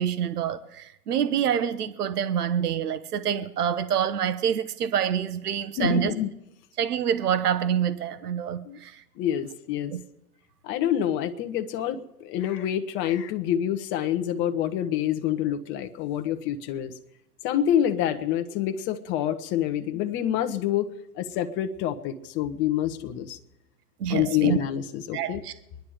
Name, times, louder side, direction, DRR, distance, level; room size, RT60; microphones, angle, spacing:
voice 1, 0.0-6.1 6.8-9.0 9.9-10.0 24.0-24.6 25.1-25.5, right 9 dB, 70° right, 1.1 m, -26 dB
voice 2, 5.8-6.3 8.6-8.8 9.2-9.9 10.6-16.9 17.4-23.4 24.1-25.4, left 10 dB, 25° left, 0.9 m, -27 dB
23.5 x 10.5 x 5.0 m
hypercardioid pair, 120°, 47 cm